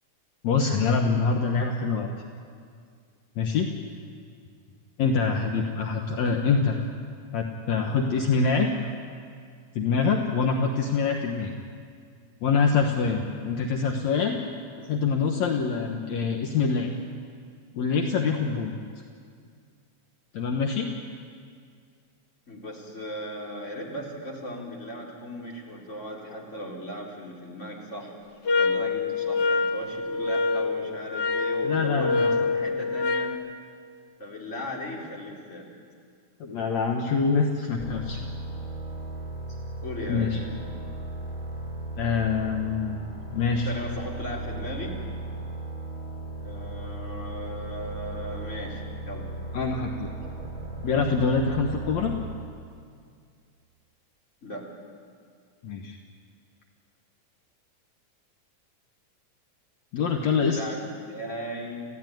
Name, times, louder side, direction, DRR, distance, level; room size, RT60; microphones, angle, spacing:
voice 1, 0.4-2.1 3.4-3.7 5.0-6.8 7.3-8.7 9.8-11.5 12.4-14.4 14.9-16.9 17.7-18.7 20.3-20.9 31.6-32.3 36.4-38.2 40.1-40.4 42.0-43.0 43.3-43.7 49.5-50.1 50.8-52.2 55.6-56.0 59.9-60.6, left 5 dB, 65° left, 2 dB, 2.5 m, -25 dB
voice 2, 22.5-28.1 28.6-33.3 34.2-35.7 39.8-40.5 43.6-45.0 46.4-49.3 54.4-54.6 60.4-61.8, equal, 20° left, -2 dB, 3.9 m, -37 dB
sound 1, 28.5-33.4, left 4 dB, 85° left, 0.9 m, -26 dB
sound 2, 37.8-52.5, right 2 dB, 5° left, 4.5 m, -36 dB
28.5 x 16.0 x 9.3 m, 2.2 s
omnidirectional pair, 3.5 m